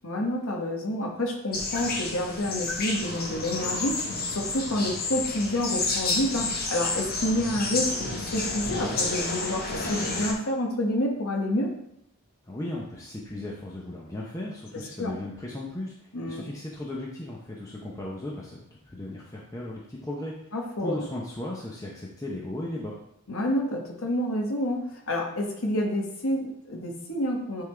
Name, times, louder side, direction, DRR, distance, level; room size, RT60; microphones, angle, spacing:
voice 1, 0.0-11.7 15.0-15.1 16.1-16.4 20.5-21.0 23.3-27.6, left 1 dB, 65° left, 0 dB, 1.1 m, -29 dB
sound 1, 1.5-10.3, left 3 dB, 45° left, 1.1 m, -30 dB
voice 2, 12.4-20.5 20.8-23.0, left 1 dB, 15° left, -3 dB, 0.7 m, -36 dB
8.9 x 3.7 x 3.3 m, 0.77 s
head